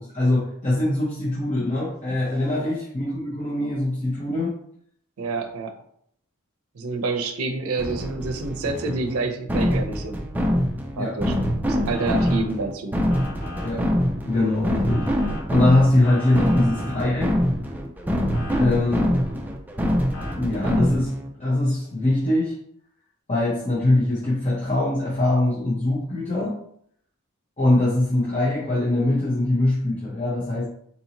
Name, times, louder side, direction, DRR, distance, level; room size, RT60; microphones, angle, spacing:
voice 1, 0.0-4.5 11.0-11.1 13.6-13.8 14.2-17.4 18.6-19.1 20.4-21.1 21.4-22.5 23.3-26.5 27.6-30.7, left 1 dB, 30° left, -7 dB, 0.8 m, -22 dB
voice 2, 5.2-5.7 6.7-10.2 11.0-11.3 11.7-12.9, right 3 dB, 85° right, 5 dB, 0.5 m, -28 dB
sound 1, 7.8-21.3, equal, 10° right, 0.3 m, -25 dB
Motor vehicle (road) / Siren, 11.9-12.4 13.1-13.7 14.9-15.4 16.0-17.0 18.3-18.6 20.1-20.3, left 3 dB, 75° left, 0.9 m, -39 dB
4.0 x 2.7 x 2.8 m, 0.68 s
head